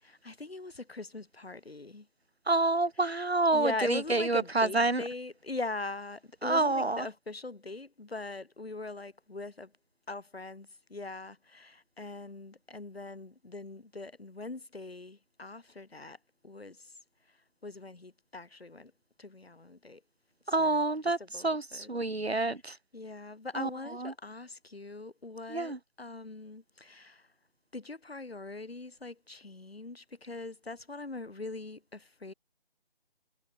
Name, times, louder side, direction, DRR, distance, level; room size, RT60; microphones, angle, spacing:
voice 1, 0.0-2.1 3.0-3.2 3.5-9.7 10.1-16.2 16.4-16.9 17.6-18.9 19.2-20.0 20.5-20.8 21.2-21.9 22.3-22.5 22.9-27.3 27.7-32.3, left 3 dB, 75° left, 1.8 m, -41 dB
voice 2, 2.5-5.0 6.4-7.1 20.5-22.8 23.6-23.7 24.0-24.1 25.5-25.8, right 2 dB, 80° right, 1.8 m, -28 dB
figure-of-eight pair, 155°, 31 cm